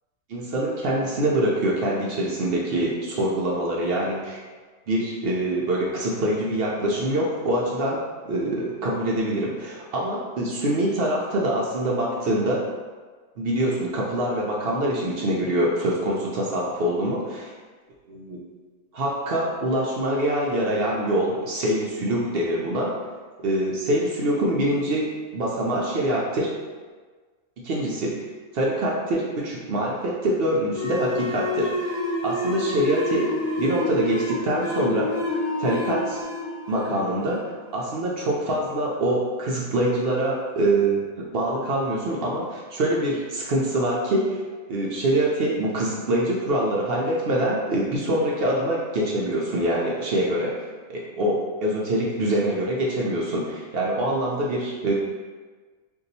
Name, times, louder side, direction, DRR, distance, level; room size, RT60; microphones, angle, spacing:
voice 1, 0.3-4.4 4.9-12.6 13.4-17.5 18.3-18.4 18.9-22.9 23.4-26.5 27.6-28.1 28.5-32.0 32.2-33.3 33.6-35.2 35.6-36.2 36.7-37.4 37.7-44.4 44.7-50.6 50.9-54.9, right 1 dB, 65° right, -3 dB, 0.6 m, -24 dB
sound 1, 30.7-37.9, left 2 dB, 85° left, 1.1 m, -28 dB
2.7 x 2.3 x 3.9 m, 1.4 s
omnidirectional pair, 1.4 m